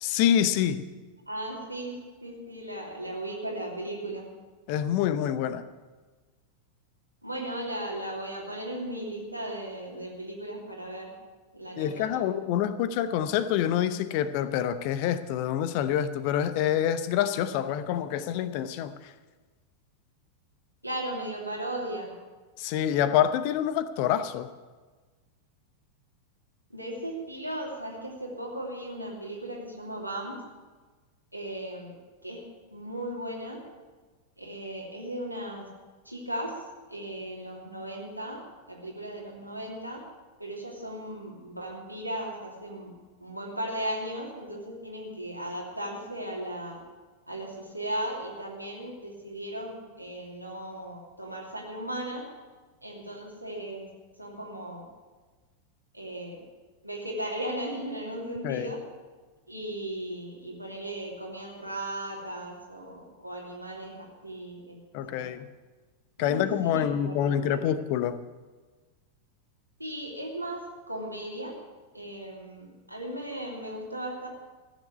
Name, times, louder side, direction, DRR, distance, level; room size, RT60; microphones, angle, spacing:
voice 1, 0.0-0.8 4.7-5.6 11.8-18.9 22.6-24.5 58.4-58.7 64.9-65.5 66.2-68.2, left 10 dB, 45° left, 13 dB, 0.8 m, -26 dB
voice 2, 1.3-4.2 7.2-11.1 11.5-12.2 20.8-22.1 26.7-30.3 31.3-31.9 32.2-32.4 32.7-33.6 34.4-35.7 36.0-36.6 36.9-38.4 38.7-40.0 40.4-42.9 43.2-46.8 47.3-52.2 52.8-53.9 54.2-54.8 55.9-56.4 56.8-58.8 59.5-65.3 66.2-67.7 69.8-70.6 70.9-71.5 71.9-74.3, right 1 dB, 90° right, -2 dB, 2.9 m, -36 dB
14.5 x 7.3 x 9.6 m, 1.3 s
figure-of-eight pair, 90°, 0 cm